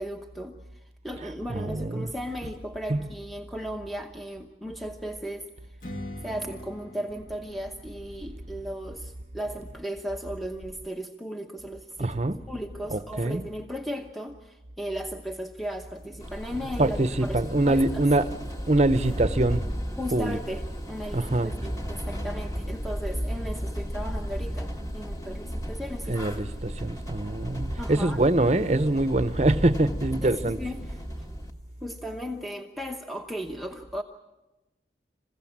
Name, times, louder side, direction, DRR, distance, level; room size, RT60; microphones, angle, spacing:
voice 1, 0.0-5.8 6.2-12.1 12.5-18.0 20.0-20.6 20.9-26.5 27.8-28.2 30.2-30.8 31.8-34.0, equal, ahead, 0.9 m, -36 dB
voice 2, 1.5-2.1 2.9-3.1 12.0-12.4 12.9-13.4 16.8-18.3 18.7-19.7 20.1-20.4 21.1-21.5 26.1-30.6, right 2 dB, 40° right, 0.8 m, -24 dB
Strum, 5.8-11.0, left 1 dB, 50° left, 2.1 m, -45 dB
sound 1, 16.2-31.5, equal, 20° left, 1.6 m, -34 dB
27.5 x 16.0 x 8.7 m
head